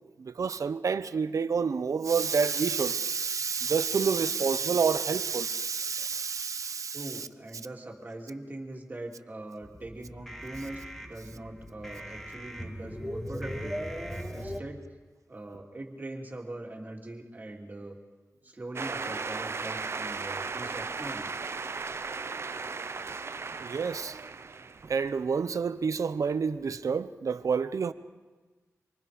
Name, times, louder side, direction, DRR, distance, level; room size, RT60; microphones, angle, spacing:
voice 1, 0.2-7.0 23.6-24.2 24.9-27.9, right 5 dB, 80° right, 0.8 m, -28 dB
voice 2, 6.9-13.8 14.3-14.8 15.3-18.0 18.4-21.3, right 2 dB, 30° right, 3.2 m, -42 dB
sound 1, 9.6-14.6, equal, 5° left, 1.8 m, -39 dB
sound 2, 18.8-25.5, right 4 dB, 50° right, 0.7 m, -36 dB
26.5 x 24.5 x 5.2 m
wide cardioid pair, 125°, 6 cm